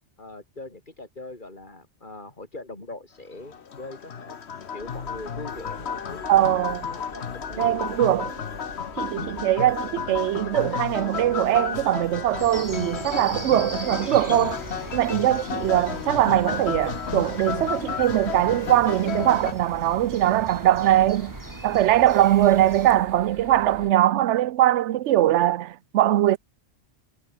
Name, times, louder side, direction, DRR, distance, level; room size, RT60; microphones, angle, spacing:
voice 1, 0.2-4.4 4.7-7.8 15.6-15.9, left 2 dB, 40° left, 4.4 m, -41 dB
sound 1, 3.3-19.5, left 7 dB, 65° left, 1.4 m, -32 dB
sound 2, 4.8-23.9, right 3 dB, 55° right, 2.9 m, -44 dB
voice 2, 6.3-6.8 7.6-8.3 9.0-14.6 14.9-21.3 21.6-26.4, right 13 dB, 75° right, 0.9 m, -21 dB
sound 3, 12.4-23.0, right 1 dB, 15° right, 3.5 m, -41 dB
omnidirectional pair, 1.2 m